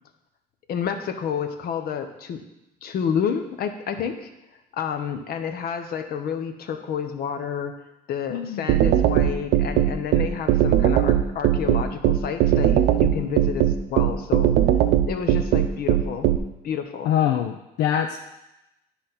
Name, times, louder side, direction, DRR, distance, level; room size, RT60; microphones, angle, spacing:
voice 1, 0.7-2.4 2.8-4.3 4.7-7.7 8.1-14.5 15.1-16.3 16.6-17.1, left 7 dB, 65° left, 7 dB, 0.9 m, -29 dB
voice 2, 8.3-8.7 17.0-18.2, left 10 dB, 85° left, 5 dB, 0.5 m, -24 dB
sound 1, 8.7-16.4, right 12 dB, 80° right, 0.6 m, -18 dB
10.0 x 4.1 x 5.8 m, 0.91 s
cardioid pair, 110°, 17 cm